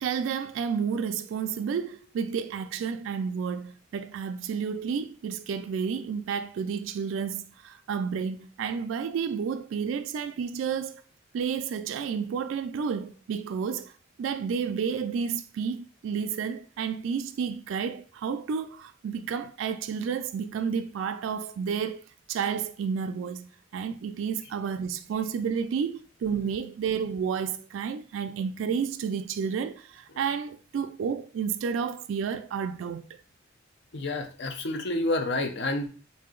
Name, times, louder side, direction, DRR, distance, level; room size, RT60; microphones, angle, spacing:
voice 1, 0.0-11.0 11.3-13.9 14.2-22.0 22.3-33.2, right 6 dB, 70° right, 0.3 m, -31 dB
voice 2, 33.9-35.9, left 2 dB, 60° left, 0.6 m, -29 dB
4.0 x 2.7 x 3.7 m
head